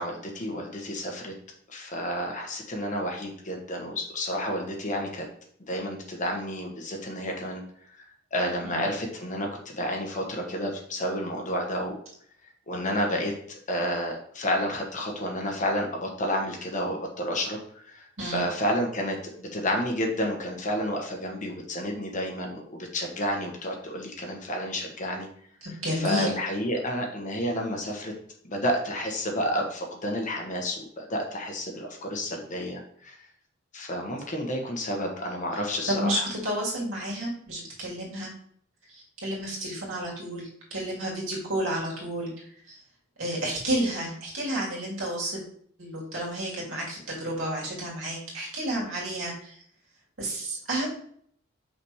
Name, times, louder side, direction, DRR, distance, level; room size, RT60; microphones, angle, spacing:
voice 1, 0.0-1.3 1.7-5.3 5.7-7.6 8.3-11.9 12.7-25.3 25.9-28.1 28.4-33.2 33.7-36.3, equal, 40° left, 1 dB, 1.2 m, -30 dB
voice 2, 25.6-26.3 35.9-38.3 38.9-42.8 43.2-45.4 45.8-49.6 50.2-50.9, right 1 dB, 75° right, -3 dB, 2.5 m, -31 dB
5.7 x 3.5 x 4.7 m, 0.63 s
head